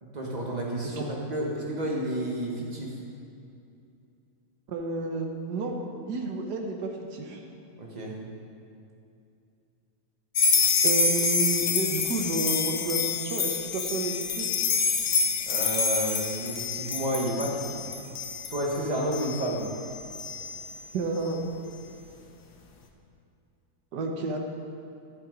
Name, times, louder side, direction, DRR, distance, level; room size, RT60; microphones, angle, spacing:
voice 1, 0.0-2.9 7.8-8.1 15.5-17.8 18.5-19.6, right 1 dB, 25° right, -2 dB, 1.6 m, -31 dB
voice 2, 4.7-5.7 6.1-7.4 10.8-14.5 20.2-20.3 20.9-21.4 23.9-24.4, right 3 dB, 70° right, 2 dB, 1.6 m, -31 dB
sound 1, 10.4-20.7, left 5 dB, 70° left, 1.4 m, -27 dB
12.0 x 7.6 x 5.1 m, 2.6 s
omnidirectional pair, 1.9 m